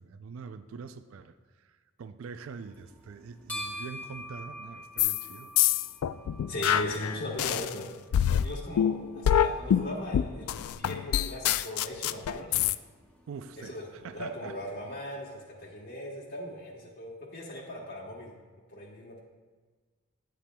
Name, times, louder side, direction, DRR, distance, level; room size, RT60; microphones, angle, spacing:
voice 1, 0.0-5.5 13.3-14.6, right 5 dB, 70° right, 11 dB, 0.4 m, -44 dB
sound 1, 2.5-15.0, equal, 5° left, 0.9 m, -48 dB
sound 2, 5.0-5.3 5.6-7.7 8.1-12.8, left 10 dB, 80° left, 0.3 m, -25 dB
voice 2, 6.5-7.9 8.4-12.6 13.6-18.4 18.7-19.2, left 1 dB, 55° left, -5 dB, 1.1 m, -38 dB
10.0 x 9.2 x 2.2 m, 1.4 s
head